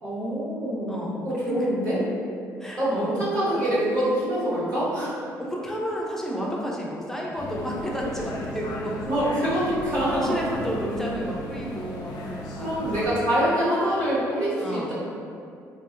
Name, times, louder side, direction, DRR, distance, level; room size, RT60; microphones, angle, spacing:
voice 1, 0.0-2.0 2.8-5.1 9.1-10.3 12.6-14.9, equal, 75° right, -10 dB, 1.1 m, -25 dB
voice 2, 0.9-1.2 1.4-1.7 2.6-3.2 5.4-9.0 10.1-12.9 14.6-14.9, equal, 5° left, -3 dB, 0.5 m, -31 dB
sound 1, 7.4-13.1, equal, 70° left, 0.4 m, -36 dB
2.6 x 2.1 x 2.3 m, 2.4 s
supercardioid pair, 60°, 7 cm